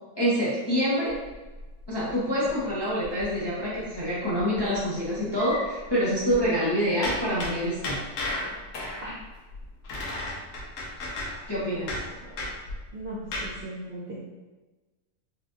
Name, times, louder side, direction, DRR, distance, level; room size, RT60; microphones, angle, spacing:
voice 1, 0.2-1.1 1.9-8.0 11.5-11.9, equal, 25° left, -9 dB, 0.5 m, -26 dB
sound 1, 1.1-3.5 3.8-4.0 4.3-6.5 7.0-13.6, left 1 dB, 65° left, 1.0 m, -35 dB
voice 2, 12.9-14.2, right 1 dB, 65° right, -6 dB, 0.6 m, -38 dB
4.1 x 2.4 x 2.5 m, 1.2 s
omnidirectional pair, 1.6 m